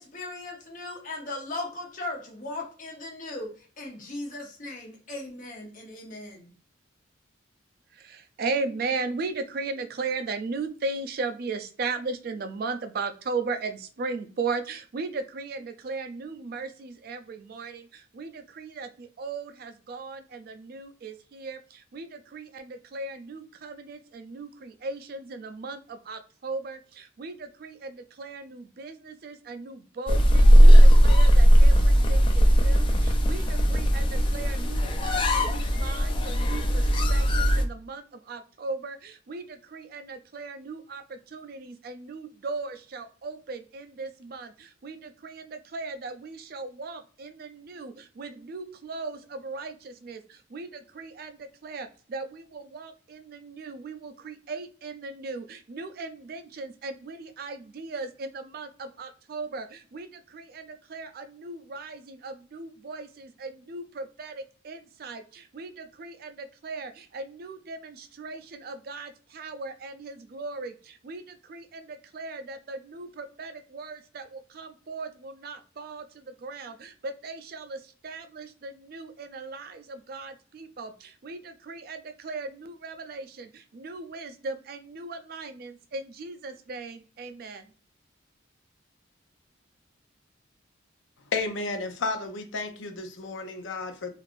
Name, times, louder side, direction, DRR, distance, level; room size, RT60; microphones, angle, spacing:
voice 1, 0.0-3.5 3.8-6.5, left 2 dB, 45° left, 0 dB, 0.9 m, -37 dB
voice 2, 7.9-87.7, right 3 dB, 50° right, 9 dB, 0.4 m, -37 dB
sound 1, 30.1-37.6, equal, 25° left, 0.3 m, -18 dB
voice 3, 91.3-94.1, left 3 dB, 85° left, 6 dB, 0.6 m, -32 dB
3.2 x 2.4 x 2.5 m, 0.39 s
head